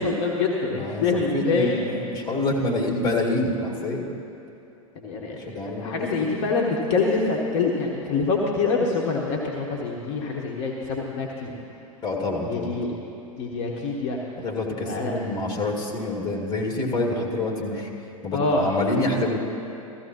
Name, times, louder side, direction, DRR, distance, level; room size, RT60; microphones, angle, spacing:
voice 1, 0.0-1.7 5.0-11.5 12.5-12.9 13.4-14.2 14.8-15.1 18.3-18.7, left 4 dB, 45° left, -2 dB, 1.2 m, -25 dB
voice 2, 0.7-4.0 5.4-6.3 12.0-12.9 14.4-17.9 18.2-19.4, left 2 dB, 25° left, 0 dB, 1.8 m, -27 dB
15.0 x 14.0 x 3.0 m, 2.8 s
figure-of-eight pair, 90°, 18 cm